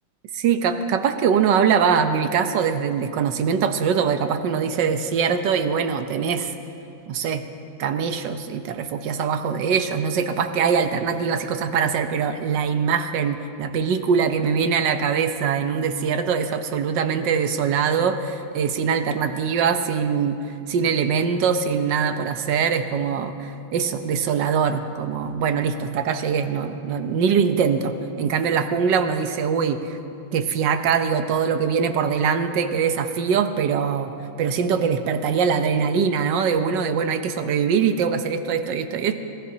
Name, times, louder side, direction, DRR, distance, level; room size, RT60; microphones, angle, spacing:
voice 1, 0.3-6.5 7.1-7.4 7.8-20.4 20.7-30.0 30.3-34.1 34.4-39.2, right 6 dB, 65° right, 8 dB, 1.4 m, -22 dB
26.0 x 18.0 x 2.8 m, 2.6 s
omnidirectional pair, 2.2 m